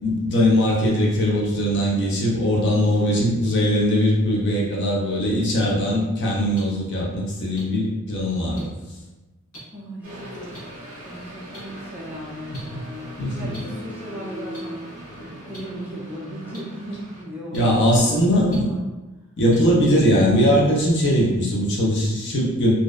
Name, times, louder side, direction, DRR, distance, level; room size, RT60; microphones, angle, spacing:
voice 1, 0.0-8.7 12.5-12.8 13.2-13.5 17.5-18.7 19.4-22.7, equal, 55° left, -3 dB, 0.5 m, -20 dB
voice 2, 2.9-3.5 9.7-10.8 11.0-18.8, right 1 dB, 10° right, -7 dB, 0.4 m, -37 dB
sound 1, 6.5-6.6 7.6-7.7 8.6-8.7 9.5-9.6 10.5-10.6 11.5-11.6 12.5-12.6 13.5-13.6 14.5-14.6 15.5-15.6 16.5-16.6 17.5-17.6 18.5-18.6 19.5-19.6, equal, 75° left, 0.9 m, -41 dB
sound 2, 10.0-17.2, equal, 35° right, 0.7 m, -40 dB
2.5 x 2.1 x 2.3 m, 1.1 s
head